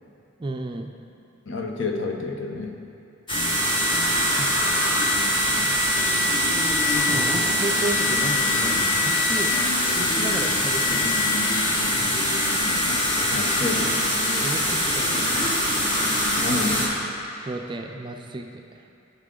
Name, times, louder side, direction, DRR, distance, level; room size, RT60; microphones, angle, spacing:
voice 1, 0.4-0.9 4.4-4.8 6.9-9.5 9.9-11.4 14.3-15.6 17.4-18.8, right 2 dB, 25° right, 4 dB, 0.4 m, -33 dB
voice 2, 1.5-2.8 5.5-5.8 13.3-14.1 16.3-16.9, left 3 dB, 65° left, 2 dB, 0.8 m, -29 dB
sound 1, 3.3-16.9, left 1 dB, 25° left, 1.5 m, -22 dB
12.5 x 5.7 x 3.7 m, 2.6 s
head